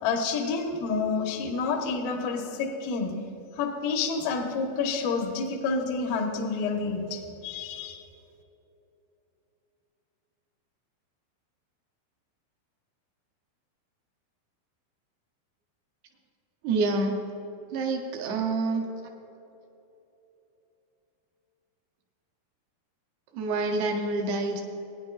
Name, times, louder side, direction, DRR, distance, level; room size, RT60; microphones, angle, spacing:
voice 1, 0.0-3.1 3.6-8.0, left 4 dB, 90° left, 2 dB, 2.0 m, -29 dB
voice 2, 16.6-17.2 17.7-18.9 23.3-24.6, right 3 dB, 80° right, 1 dB, 2.3 m, -27 dB
21.0 x 10.5 x 2.4 m, 3.0 s
omnidirectional pair, 5.8 m